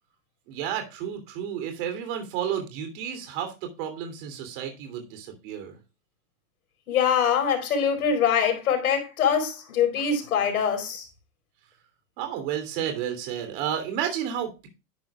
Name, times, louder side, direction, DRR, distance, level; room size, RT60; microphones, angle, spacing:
voice 1, 0.5-5.8 12.2-14.7, right 9 dB, 35° right, 3.1 m, -31 dB
voice 2, 6.9-11.1, left 7 dB, 75° left, 4.9 m, -23 dB
11.0 x 10.5 x 2.3 m
supercardioid pair, 170°, 43 cm